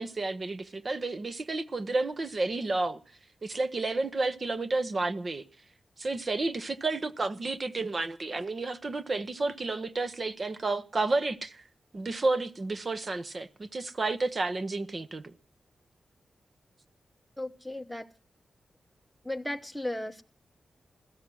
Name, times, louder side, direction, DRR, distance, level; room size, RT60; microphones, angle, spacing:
voice 1, 0.0-3.0 3.4-5.4 6.0-11.6 11.9-15.3, right 3 dB, 35° right, 0.8 m, -31 dB
voice 2, 17.4-18.1 19.2-20.2, left 1 dB, ahead, 0.9 m, -35 dB
16.5 x 13.5 x 6.2 m
wide cardioid pair, 180°, 0 cm